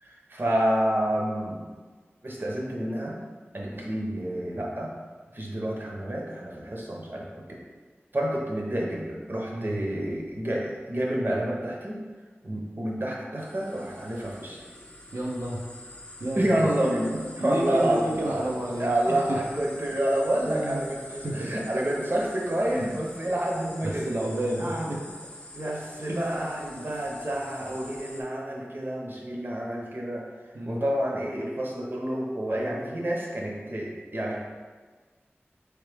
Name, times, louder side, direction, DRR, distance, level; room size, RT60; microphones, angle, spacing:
voice 1, 0.0-1.6 2.2-3.2 3.5-4.9 5.3-7.6 8.1-12.0 12.4-14.6 16.3-18.4 18.8-24.1 24.6-24.9 25.5-30.3 30.6-34.4, right 1 dB, 50° right, -2 dB, 0.9 m, -29 dB
sound 1, 13.4-28.2, left 1 dB, 25° left, 0.7 m, -46 dB
voice 2, 15.1-15.6 16.2-16.5 17.4-19.4 20.4-20.8 21.2-21.5 23.8-25.0 26.0-26.3 30.5-30.8, right 1 dB, 85° right, -3 dB, 0.6 m, -31 dB
4.3 x 3.3 x 3.4 m, 1.4 s
wide cardioid pair, 50°, 4 cm